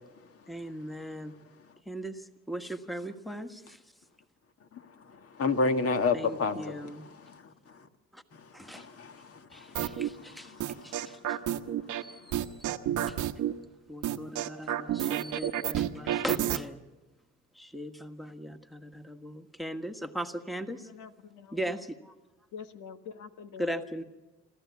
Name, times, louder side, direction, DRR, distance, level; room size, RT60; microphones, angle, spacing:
voice 1, 0.5-1.3 1.8-3.8 6.1-7.1 8.1-8.2 8.5-8.9 9.5-10.6 10.8-11.4 12.0-12.7 13.1-13.2 13.9-16.8 17.5-20.9 21.5-22.1 23.6-24.0, equal, ahead, 1.5 m, -39 dB
voice 2, 5.1-6.9 7.2-7.8 8.6-11.2, left 4 dB, 50° left, 1.8 m, -32 dB
sound 1, 9.8-10.1 10.6-12.0 12.3-13.5 14.0-16.6, right 11 dB, 85° right, 1.1 m, -29 dB
voice 3, 20.8-21.6 22.5-24.0, left 6 dB, 85° left, 1.6 m, -45 dB
27.5 x 14.0 x 8.5 m
cardioid pair, 90°, 30 cm